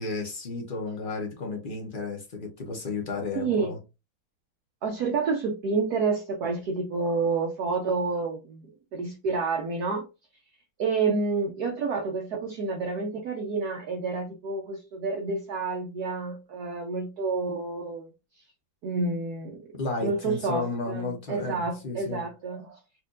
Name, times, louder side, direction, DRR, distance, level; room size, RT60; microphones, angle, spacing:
voice 1, 0.0-3.8 19.7-22.2, left 3 dB, 55° left, 0.5 m, -33 dB
voice 2, 3.3-3.7 4.8-10.0 10.8-18.1 18.8-19.6 20.0-22.8, right 4 dB, 65° right, 1.0 m, -29 dB
4.4 x 2.6 x 2.4 m
omnidirectional pair, 2.2 m